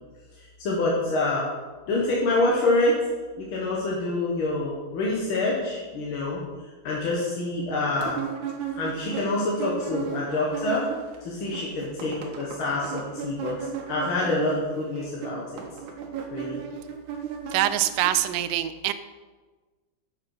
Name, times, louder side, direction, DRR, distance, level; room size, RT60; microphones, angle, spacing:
voice 1, 0.4-1.5 1.9-3.0 3.4-6.4 6.8-8.2 8.7-10.9 11.2-13.6 13.9-15.4 16.3-16.6, left 2 dB, 50° left, -4 dB, 1.8 m, -26 dB
sound 1, 8.0-11.2 11.4-18.1, right 8 dB, 70° right, 2.4 m, -35 dB
voice 2, 17.5-18.9, right 13 dB, 85° right, 12 dB, 2.2 m, -24 dB
9.8 x 7.5 x 4.8 m, 1.3 s
omnidirectional pair, 3.8 m